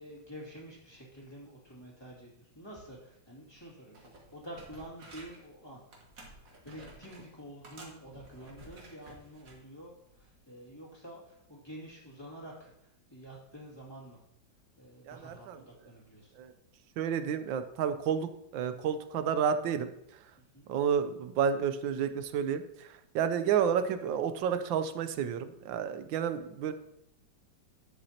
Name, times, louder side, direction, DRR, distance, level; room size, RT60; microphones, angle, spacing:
voice 1, 0.0-4.0 4.3-5.8 6.6-14.2 14.8-16.3 20.4-20.7, right 1 dB, 15° left, -5 dB, 2.3 m, -48 dB
sound 1, 3.6-3.7 3.9-5.5 5.9-7.3 7.6-9.6 10.1-10.3, right 1 dB, 50° right, 2.0 m, -52 dB
voice 2, 15.0-15.6 16.4-16.5 17.0-19.9 20.7-26.7, right 7 dB, 90° right, 10 dB, 1.4 m, -30 dB
11.5 x 7.9 x 2.8 m, 0.79 s
omnidirectional pair, 2.0 m